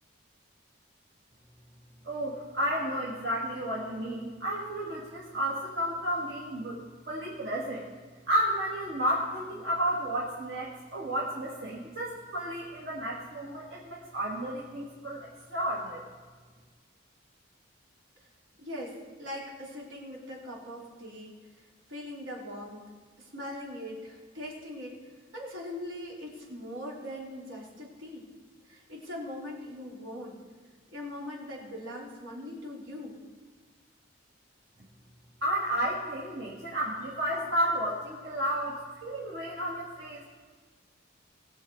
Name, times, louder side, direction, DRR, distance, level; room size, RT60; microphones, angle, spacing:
voice 1, 2.0-7.9 8.3-16.0 35.4-40.2, equal, 65° right, -6 dB, 2.1 m, -32 dB
voice 2, 18.6-22.8 23.2-24.9 25.3-28.3 28.7-30.4 30.9-33.2, left 1 dB, 80° right, -4 dB, 3.4 m, -41 dB
20.5 x 6.9 x 4.7 m, 1.5 s
head